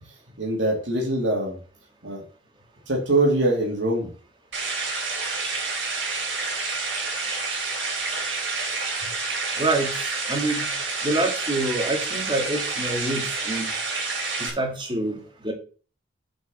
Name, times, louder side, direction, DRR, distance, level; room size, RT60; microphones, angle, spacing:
voice 1, 0.4-1.6 2.0-2.2 2.9-4.1, right 1 dB, 70° right, -2 dB, 2.9 m, -23 dB
sound 1, 4.5-14.5, right 3 dB, 90° right, 4.8 m, -28 dB
voice 2, 9.6-9.9 10.3-10.7 11.0-13.7 14.4-15.2 15.4-15.5, right 2 dB, 25° right, 3 dB, 2.1 m, -26 dB
7.7 x 5.4 x 6.5 m, 0.40 s
head